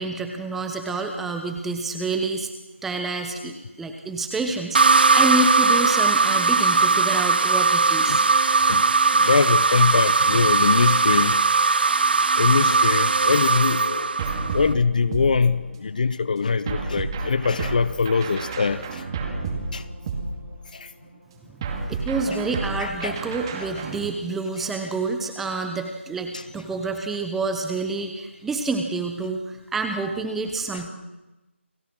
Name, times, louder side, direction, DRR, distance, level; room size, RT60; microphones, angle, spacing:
voice 1, 0.0-2.5 2.8-8.3 21.9-30.9, right 3 dB, 5° right, 5 dB, 0.9 m, -28 dB
sound 1, 4.7-14.7, right 4 dB, 50° right, 0.7 m, -19 dB
voice 2, 9.1-11.4 12.4-14.1 14.5-19.0 19.7-19.9 20.7-20.9 22.8-23.2 26.3-26.4 30.7-30.8, left 5 dB, 40° left, 16 dB, 0.9 m, -23 dB
sound 2, 14.2-15.9 16.7-20.8 21.6-24.1, right 4 dB, 20° right, 2.4 m, -31 dB
29.5 x 18.0 x 6.3 m, 1.0 s
figure-of-eight pair, 160°, 7 cm